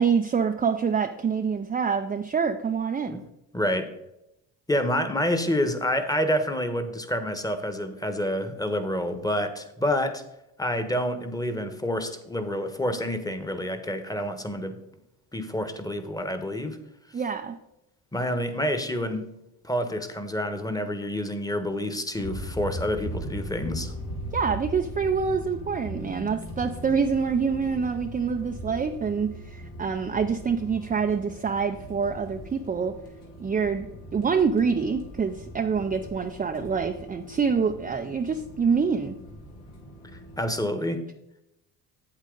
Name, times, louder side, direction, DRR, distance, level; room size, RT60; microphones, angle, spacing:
voice 1, 0.0-3.2 17.1-17.6 24.3-32.9 33.4-33.9 34.1-39.1, right 6 dB, 20° right, 5 dB, 0.5 m, -26 dB
voice 2, 3.5-3.9 4.7-10.2 10.6-14.8 15.3-16.8 18.1-19.3 19.6-23.9 40.4-41.0, equal, 10° left, 9 dB, 1.2 m, -28 dB
sound 1, 22.1-40.5, equal, 85° left, 2.7 m, -39 dB
8.4 x 8.1 x 3.9 m, 0.87 s
supercardioid pair, 85°, 40 cm